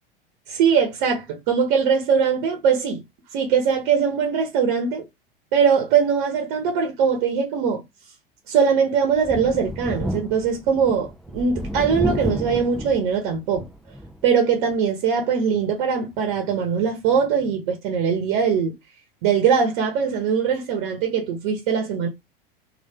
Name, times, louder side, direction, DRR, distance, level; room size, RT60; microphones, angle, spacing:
voice 1, 0.5-3.0 3.3-5.0 5.5-7.8 8.5-13.6 14.2-18.7 19.2-22.1, right 6 dB, 50° right, 1.1 m, -21 dB
Thunder, 9.2-14.3 14.7-14.8 16.1-16.2, equal, ahead, 0.5 m, -31 dB
3.2 x 2.7 x 4.3 m
figure-of-eight pair, 85°, 29 cm